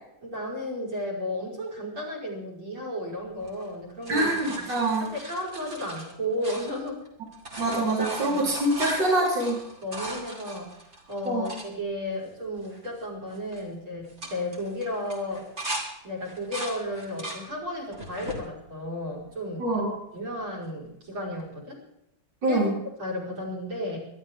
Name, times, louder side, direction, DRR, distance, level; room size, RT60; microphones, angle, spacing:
voice 1, 0.2-4.6 5.0-7.0 7.7-8.5 9.8-10.7 11.1-15.4 16.0-19.7 20.1-21.8 22.5-22.6 23.0-24.0, left 1 dB, 80° right, -1 dB, 6.0 m, -33 dB
sound 1, 3.4-7.1 7.3-11.7 12.3-12.4 12.6-13.0 13.3-13.6 14.0-15.9 16.2-17.4 17.9-18.4 19.0-19.8 21.4-21.5, right 1 dB, 30° right, 3.6 m, -38 dB
voice 2, 4.1-5.1 7.6-9.6 11.2-11.5 19.6-19.9 22.4-22.7, right 1 dB, 60° right, -4 dB, 4.8 m, -25 dB
23.5 x 13.0 x 3.8 m, 0.81 s
omnidirectional pair, 2.2 m